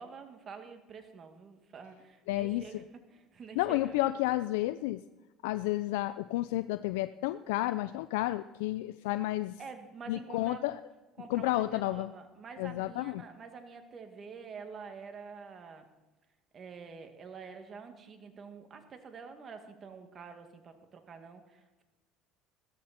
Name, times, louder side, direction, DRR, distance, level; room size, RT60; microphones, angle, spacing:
voice 1, 0.0-4.0 9.6-10.6 11.2-15.9 16.5-21.8, right 5 dB, 40° right, 6 dB, 2.2 m, -47 dB
voice 2, 2.3-2.6 3.6-5.0 5.4-9.6 10.1-10.8 11.3-12.1 12.6-13.2, left 17 dB, 85° left, 13 dB, 0.4 m, -31 dB
15.5 x 14.0 x 4.4 m, 1.1 s
supercardioid pair, 95°, 0 cm